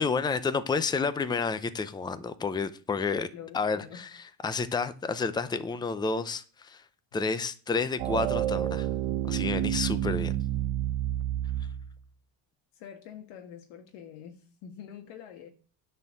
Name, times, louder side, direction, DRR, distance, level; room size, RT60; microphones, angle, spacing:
voice 1, 0.0-3.3 3.5-6.8 7.1-8.9 9.3-10.3, left 4 dB, 10° left, 0.6 m, -30 dB
voice 2, 3.1-4.0 12.7-15.5, left 9 dB, 75° left, 1.6 m, -46 dB
sound 1, 8.0-11.9, right 13 dB, 85° right, 1.0 m, -29 dB
10.0 x 4.5 x 7.4 m
cardioid pair, 135°, 48 cm